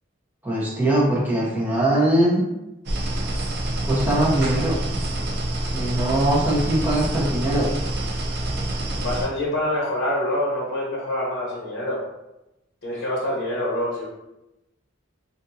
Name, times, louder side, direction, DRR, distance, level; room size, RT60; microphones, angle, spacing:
voice 1, 0.4-2.4 3.8-4.8 5.7-7.7 8.3-8.5, right 1 dB, 10° right, -6 dB, 0.9 m, -21 dB
sound 1, 2.9-9.3, right 1 dB, 55° right, 0.5 m, -27 dB
voice 2, 8.9-12.0 12.8-14.1, left 1 dB, 55° left, -5 dB, 0.9 m, -26 dB
3.4 x 2.6 x 2.7 m, 0.94 s
head